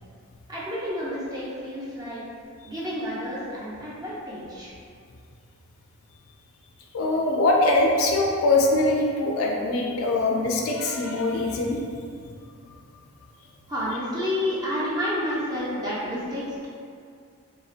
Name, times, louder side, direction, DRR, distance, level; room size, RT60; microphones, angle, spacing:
voice 1, 0.5-2.2 2.6-4.7 13.7-16.7, left 1 dB, 20° right, -8 dB, 0.5 m, -30 dB
voice 2, 6.9-11.8, left 2 dB, 75° left, 0 dB, 0.3 m, -22 dB
2.7 x 2.1 x 2.4 m, 2.3 s
head